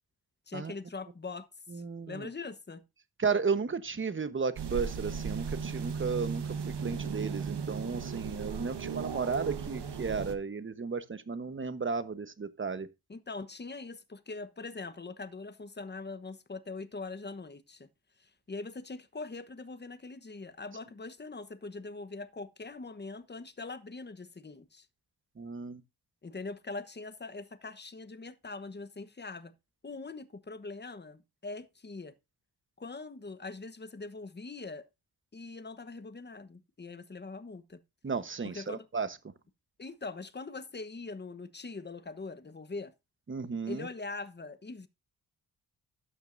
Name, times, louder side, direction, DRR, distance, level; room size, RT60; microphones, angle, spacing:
voice 1, 0.5-1.5 1.7-2.8 13.1-17.9 18.2-24.9 26.2-29.5 29.8-32.1 32.8-34.9 35.3-37.8 38.4-38.8 39.8-42.9 43.6-44.9, left 3 dB, 25° left, 1.1 m, -42 dB
voice 2, 1.7-2.3 3.2-6.4 6.8-12.9 25.4-25.8 38.0-39.1 43.3-43.9, right 5 dB, 30° right, 1.2 m, -34 dB
sound 1, 4.6-10.4, right 6 dB, 85° right, 1.5 m, -36 dB
12.5 x 9.0 x 2.6 m
wide cardioid pair, 115°, 40 cm